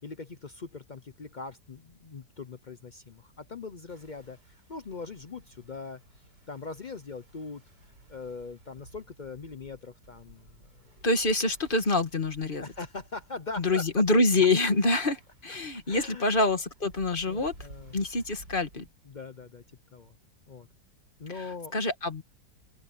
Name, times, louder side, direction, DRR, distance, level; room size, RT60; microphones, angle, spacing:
voice 1, 0.0-6.0 6.5-7.6 8.1-10.6 12.5-13.8 15.9-16.3 17.3-17.9 19.1-19.6 19.9-20.1 20.5-20.7 21.2-21.7, left 4 dB, 55° left, 0.5 m, -41 dB
sound 1, 3.9-18.9, right 2 dB, 75° right, 6.5 m, -55 dB
voice 2, 11.0-12.6 13.6-17.5 17.9-18.9 21.3-21.5 21.7-22.2, left 2 dB, 30° left, 1.8 m, -26 dB
open air
omnidirectional pair, 1.8 m